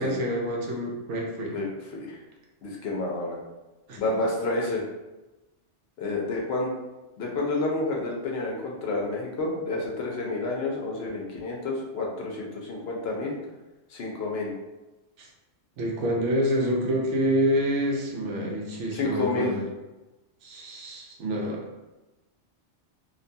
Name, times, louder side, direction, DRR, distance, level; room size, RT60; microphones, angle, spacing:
voice 1, 0.0-1.6 3.9-4.0 15.2-15.3 15.8-19.6 20.4-21.6, equal, 85° right, -1 dB, 0.9 m, -27 dB
voice 2, 2.6-3.4 4.0-4.8 6.0-6.7 7.2-13.4 13.9-14.5 18.9-19.5, left 2 dB, 65° left, -2 dB, 0.8 m, -29 dB
2.5 x 2.2 x 2.6 m, 1.1 s
omnidirectional pair, 1.2 m